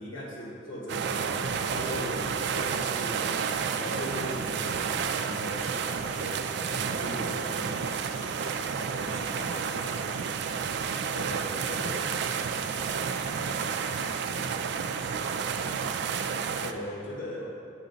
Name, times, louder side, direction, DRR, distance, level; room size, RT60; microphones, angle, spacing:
voice 1, 0.0-2.2 2.5-9.8 11.1-12.0 16.6-17.5, equal, 85° left, -6 dB, 1.5 m, -39 dB
sound 1, 0.9-16.7, right 6 dB, 65° right, 0.4 m, -31 dB
voice 2, 8.1-11.2 12.6-16.4 16.7-17.5, left 1 dB, 65° left, -8 dB, 1.4 m, -50 dB
8.1 x 6.5 x 4.0 m, 2.5 s
head